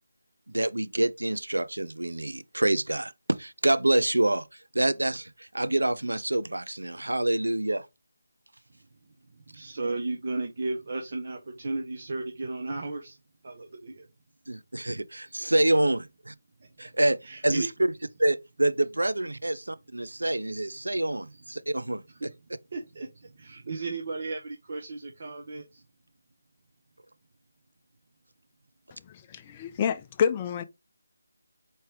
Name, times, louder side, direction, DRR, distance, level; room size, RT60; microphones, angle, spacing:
voice 1, 0.5-4.5 4.7-7.9 14.5-16.3 16.8-17.2 17.4-17.9 18.2-22.3, right 1 dB, 80° right, 0.5 m, -27 dB
voice 2, 9.1-13.2 13.4-14.1 15.2-15.5 16.6-16.9 17.2-17.7 20.0-20.1 21.1-21.6 22.1-22.3 22.7-25.8, right 3 dB, 45° right, 0.8 m, -35 dB
voice 3, 29.0-30.6, left 7 dB, 20° left, 0.3 m, -28 dB
4.2 x 3.1 x 3.4 m
figure-of-eight pair, 160°, 0 cm